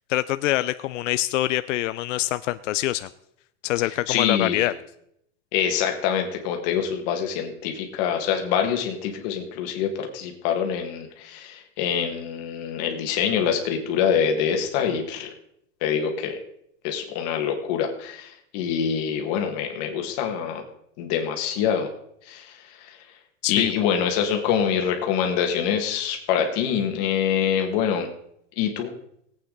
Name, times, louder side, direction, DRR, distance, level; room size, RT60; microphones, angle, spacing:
voice 1, 0.1-3.1 3.6-4.7 23.4-23.7, left 15 dB, 85° left, 13 dB, 0.6 m, -25 dB
voice 2, 4.1-4.7 5.5-15.3 15.8-16.4 16.8-20.6 21.0-21.9 22.2-23.0 23.5-28.1 28.6-28.9, left 8 dB, 35° left, 3 dB, 1.7 m, -25 dB
19.0 x 8.5 x 3.9 m, 0.73 s
supercardioid pair, 180°, 37 cm